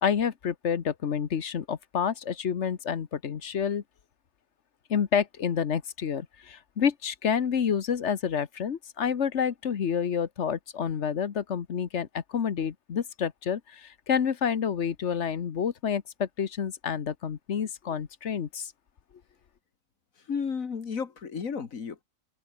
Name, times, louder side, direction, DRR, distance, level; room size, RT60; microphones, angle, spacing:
voice 1, 0.0-3.8 4.9-18.7, left 7 dB, 60° left, 1.4 m, -29 dB
voice 2, 20.2-22.0, left 6 dB, 80° left, 2.1 m, -33 dB
open air
omnidirectional pair, 1.4 m